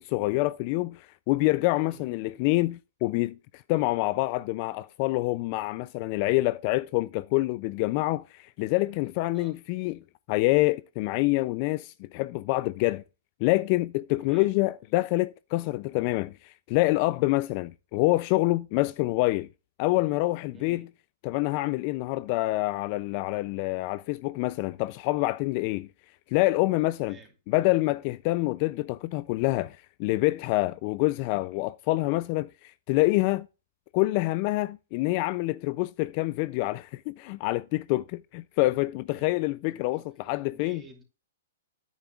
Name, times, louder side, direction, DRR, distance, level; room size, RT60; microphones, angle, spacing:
voice 1, 0.0-3.4 3.7-13.0 13.4-19.5 19.8-20.9 21.2-25.9 26.3-27.2 27.5-33.5 33.9-40.8, left 20 dB, 35° left, 0.3 m, -26 dB
voice 2, 14.2-14.5 20.5-20.9 27.0-27.3 39.1-41.0, right 4 dB, 15° right, 2.7 m, -53 dB
10.0 x 9.2 x 2.4 m
hypercardioid pair, 160°, 0 cm